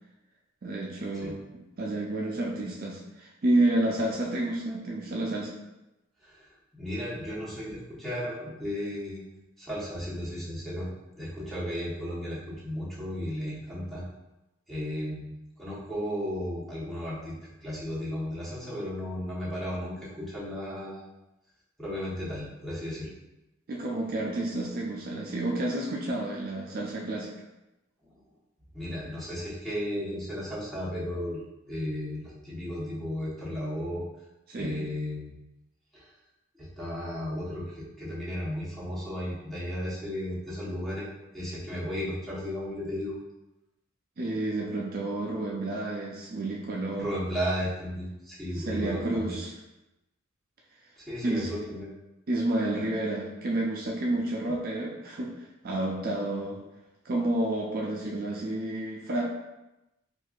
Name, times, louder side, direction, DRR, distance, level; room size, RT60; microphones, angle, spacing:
voice 1, 0.6-1.4 1.8-5.6 23.7-27.3 34.5-34.8 44.2-47.2 48.5-49.5 51.2-51.5 52.3-56.6 57.0-59.2, right 1 dB, 45° right, -2 dB, 0.4 m, -30 dB
voice 2, 6.8-9.2 9.6-14.0 14.7-15.2 15.6-17.4 17.6-21.1 21.8-23.1 28.7-31.4 31.7-34.0 34.6-35.4 35.9-36.1 36.6-41.1 41.3-43.2 46.9-49.4 51.0-51.9, equal, ahead, -9 dB, 1.0 m, -34 dB
4.4 x 2.5 x 2.4 m, 0.96 s
head